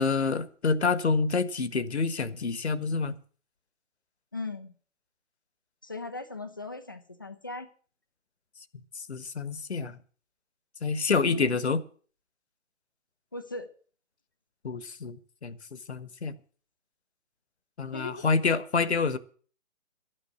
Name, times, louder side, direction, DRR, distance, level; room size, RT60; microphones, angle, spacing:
voice 1, 0.0-3.1 8.9-10.0 10.8-11.8 14.6-16.4 17.8-19.2, left 4 dB, 60° left, 15 dB, 1.2 m, -28 dB
voice 2, 4.3-4.7 5.8-7.7 11.2-11.6 13.3-13.7 17.9-18.2, left 2 dB, 15° left, 9 dB, 0.5 m, -38 dB
12.5 x 9.0 x 7.9 m, 0.43 s
figure-of-eight pair, 145°, 38 cm